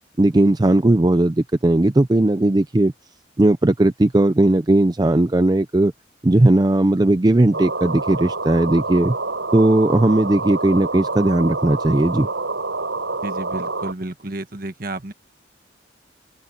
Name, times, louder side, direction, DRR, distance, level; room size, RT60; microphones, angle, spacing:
voice 1, 0.2-2.9 3.4-5.9 6.2-9.2 9.5-12.3, right 1 dB, 20° right, 0.4 m, -17 dB
sound 1, 7.5-13.9, right 3 dB, 85° right, 6.1 m, -27 dB
voice 2, 13.2-15.1, right 1 dB, 50° right, 1.6 m, -31 dB
open air
head